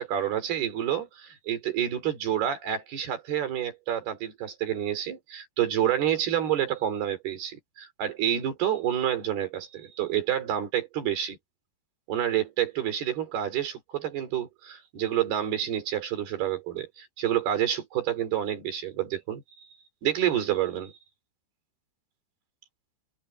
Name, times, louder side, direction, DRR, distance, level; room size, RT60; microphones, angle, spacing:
voice 1, 0.0-11.4 12.1-19.7 20.0-20.9, right 11 dB, 65° right, 5.6 m, -28 dB
omnidirectional pair, 4.9 m